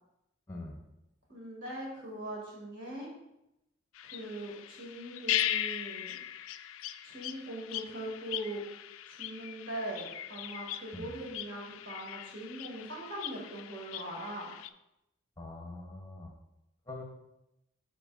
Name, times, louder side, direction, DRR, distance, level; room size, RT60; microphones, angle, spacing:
voice 1, 0.5-0.8 10.9-11.1 15.4-16.3 16.9-17.0, left 2 dB, 15° left, 1 dB, 0.7 m, -43 dB
voice 2, 1.3-3.1 4.1-6.2 7.0-8.6 9.1-14.5, right 1 dB, 65° right, -2 dB, 2.2 m, -41 dB
sound 1, 4.0-14.7, left 12 dB, 90° left, 0.3 m, -39 dB
11.0 x 4.3 x 2.4 m, 0.88 s
head